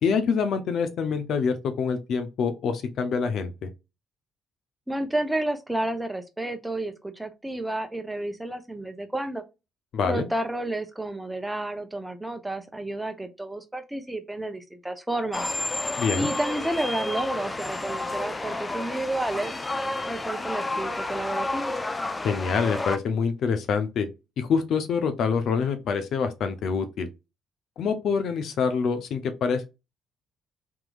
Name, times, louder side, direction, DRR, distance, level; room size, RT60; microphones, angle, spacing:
voice 1, 0.0-3.7 9.9-10.3 16.0-16.3 22.2-24.1 24.4-27.1 27.8-29.7, left 5 dB, 70° left, 0.7 m, -26 dB
voice 2, 4.9-9.4 10.0-15.5 16.1-19.5 20.1-21.7, right 1 dB, 10° right, 0.8 m, -31 dB
sound 1, 15.3-23.0, left 2 dB, 25° left, 0.5 m, -30 dB
3.7 x 3.0 x 2.4 m
supercardioid pair, 65°, 0 cm